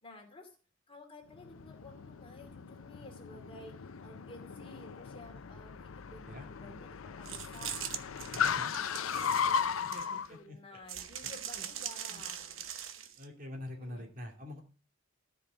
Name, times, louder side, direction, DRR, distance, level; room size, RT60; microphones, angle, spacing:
voice 1, 0.0-0.6 0.9-3.7 4.0-12.6 13.8-14.1, left 1 dB, 30° left, 3 dB, 2.5 m, -53 dB
Car, 1.3-10.3, left 7 dB, 85° left, 0.5 m, -36 dB
sound 1, 7.2-10.3 10.9-13.2, right 9 dB, 75° right, 1.0 m, -41 dB
voice 2, 8.3-8.7 9.8-10.8 11.2-11.7 12.1-12.2 13.2-14.6, left 1 dB, 45° right, 2 dB, 2.4 m, -46 dB
13.5 x 5.3 x 6.6 m, 0.38 s
head